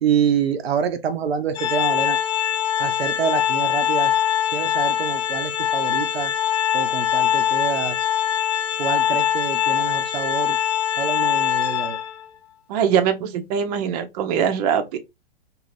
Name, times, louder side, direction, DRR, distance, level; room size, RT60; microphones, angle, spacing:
voice 1, 0.0-2.2 2.8-4.1 4.5-6.3 6.7-7.9 8.8-10.6 11.0-12.0, right 7 dB, 85° right, 0.6 m, -26 dB
Organ, 1.6-12.3, left 10 dB, 35° left, 0.4 m, -22 dB
voice 2, 12.7-15.0, right 8 dB, 40° right, 0.5 m, -22 dB
2.6 x 2.4 x 3.2 m
hypercardioid pair, 115°, 30 cm